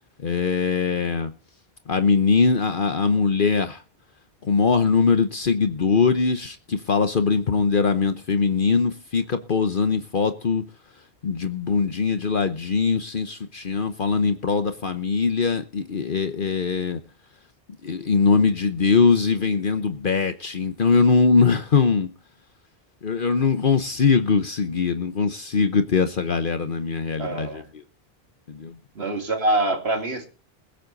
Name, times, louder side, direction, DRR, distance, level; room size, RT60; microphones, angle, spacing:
voice 1, 0.2-1.3 1.9-3.8 4.4-10.6 11.2-17.0 17.8-22.1 23.0-27.8 28.5-28.8, left 5 dB, 55° left, 1.1 m, -21 dB
voice 2, 27.2-27.7 29.0-30.3, right 2 dB, 80° right, 2.6 m, -25 dB
21.5 x 7.8 x 4.0 m
omnidirectional pair, 1.1 m